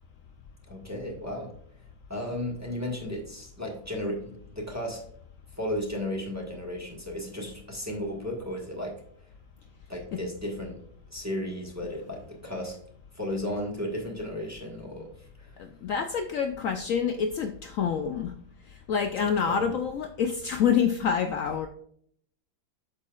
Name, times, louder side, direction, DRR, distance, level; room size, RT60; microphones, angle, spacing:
voice 1, 0.7-1.5 2.1-5.0 5.6-9.0 9.9-10.8 11.1-12.8 13.1-15.5 19.2-19.7, left 1 dB, 10° right, -1 dB, 1.2 m, -34 dB
voice 2, 15.6-18.3 18.6-21.7, left 7 dB, 80° left, 6 dB, 0.7 m, -27 dB
8.3 x 6.4 x 2.4 m, 0.62 s
omnidirectional pair, 2.1 m